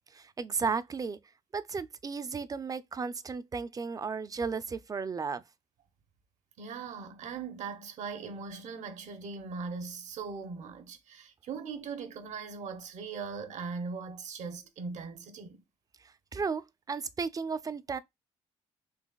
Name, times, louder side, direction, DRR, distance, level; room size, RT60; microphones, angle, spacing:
voice 1, 0.1-1.2 1.5-5.4 16.3-18.0, right 5 dB, 25° right, 0.4 m, -34 dB
voice 2, 6.6-15.6, right 5 dB, 65° right, 0.8 m, -40 dB
3.9 x 2.8 x 2.3 m
supercardioid pair, 70°, 13 cm